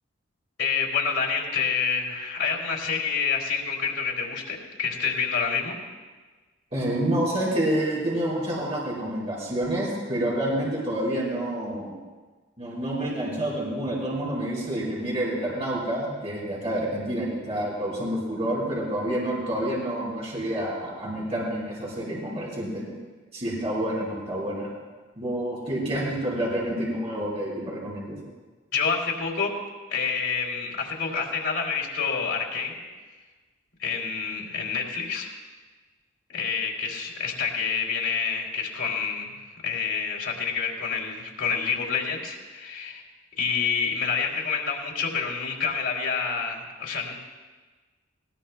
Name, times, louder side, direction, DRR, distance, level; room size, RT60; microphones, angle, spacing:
voice 1, 0.6-5.8 28.7-29.5 29.9-32.8 33.8-35.3 36.3-39.3 39.6-43.0 43.4-47.2, left 5 dB, 80° left, -1 dB, 2.8 m, -28 dB
voice 2, 6.7-11.9 12.6-22.9 23.3-24.7 25.2-28.2, right 1 dB, 35° right, -6 dB, 4.4 m, -28 dB
20.0 x 18.5 x 2.2 m, 1.3 s
head